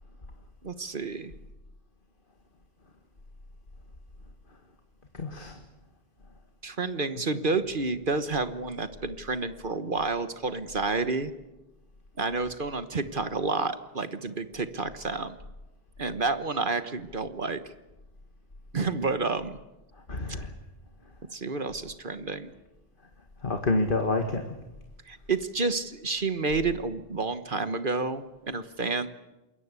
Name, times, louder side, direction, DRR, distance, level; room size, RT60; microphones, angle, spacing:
voice 1, 0.6-1.3 6.6-11.3 12.2-15.4 16.0-17.6 18.7-19.6 21.3-22.5 25.1-29.1, right 3 dB, 55° right, 11 dB, 1.4 m, -30 dB
voice 2, 5.1-5.6 7.3-7.4 19.9-20.5 23.4-24.4, left 2 dB, 55° left, 5 dB, 2.1 m, -28 dB
28.0 x 22.0 x 8.3 m, 1.0 s
omnidirectional pair, 1.0 m